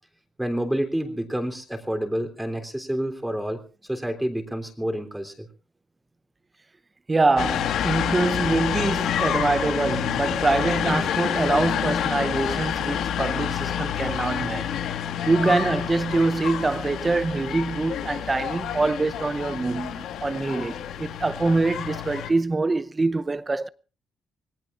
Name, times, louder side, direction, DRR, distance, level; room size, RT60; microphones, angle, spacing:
voice 1, 0.4-5.5, right 1 dB, 5° right, 3.4 m, -29 dB
voice 2, 7.1-14.7 15.3-23.7, right 3 dB, 25° right, 0.8 m, -24 dB
sound 1, 7.4-22.3, left 9 dB, 80° left, 1.7 m, -28 dB
26.5 x 18.5 x 2.5 m
cardioid pair, 90°, 0 cm